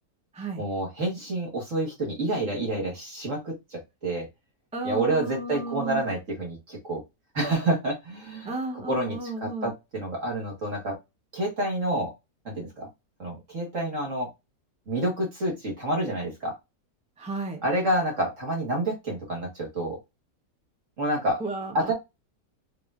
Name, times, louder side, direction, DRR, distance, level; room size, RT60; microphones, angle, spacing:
voice 1, 0.6-4.3 4.8-7.0 7.3-8.5 8.9-11.0 11.3-12.1 12.5-12.9 13.2-14.3 14.9-16.6 17.6-20.0 21.0-21.4 21.7-21.9, right 1 dB, 50° right, 1.9 m, -28 dB
voice 2, 4.7-6.0 8.4-9.7 17.2-17.6 21.4-21.9, right 3 dB, 10° right, 0.4 m, -33 dB
4.9 x 3.4 x 2.5 m
omnidirectional pair, 1.8 m